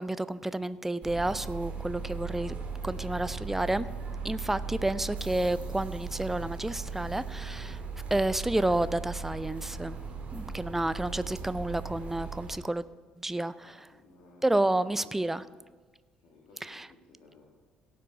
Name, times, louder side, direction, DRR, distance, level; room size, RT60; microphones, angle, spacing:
voice 1, 0.0-2.6 2.8-3.9 4.2-7.8 8.1-10.0 10.3-13.7 14.4-15.4 16.6-16.9, right 1 dB, 10° right, 15 dB, 0.4 m, -30 dB
sound 1, 1.0-12.6, right 5 dB, 40° right, 1.9 m, -38 dB
voice 2, 13.6-15.5 16.2-17.5, left 2 dB, 55° left, -1 dB, 1.8 m, -57 dB
17.0 x 6.0 x 4.7 m, 1.4 s
figure-of-eight pair, 50°, 4 cm